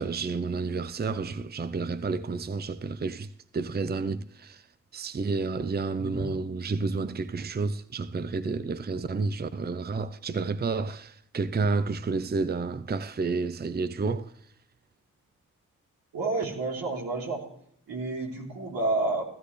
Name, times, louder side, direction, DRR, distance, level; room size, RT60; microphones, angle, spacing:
voice 1, 0.0-4.7 4.9-14.3, right 4 dB, 30° right, 0.7 m, -30 dB
voice 2, 6.0-6.3 16.1-17.4 17.9-19.2, right 3 dB, 80° right, 3.6 m, -30 dB
17.0 x 13.0 x 3.3 m
supercardioid pair, 45°, 34 cm